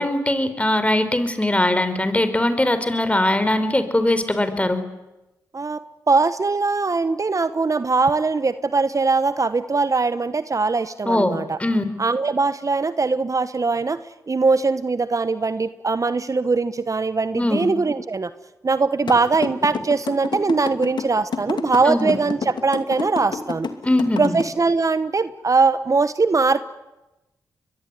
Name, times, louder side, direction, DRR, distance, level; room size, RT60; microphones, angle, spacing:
voice 1, 0.0-4.8 11.1-11.3 11.6-11.8 17.3-17.6 21.9-22.2 23.8-24.4, left 1 dB, 15° left, 11 dB, 4.4 m, -21 dB
voice 2, 5.5-11.6 12.0-14.0 14.3-18.3 18.6-23.7 24.2-26.6, right 4 dB, 40° right, 13 dB, 1.1 m, -21 dB
sound 1, 19.1-24.4, left 5 dB, 65° left, 2.6 m, -27 dB
22.5 x 22.5 x 9.6 m, 0.99 s
supercardioid pair, 40°, 8 cm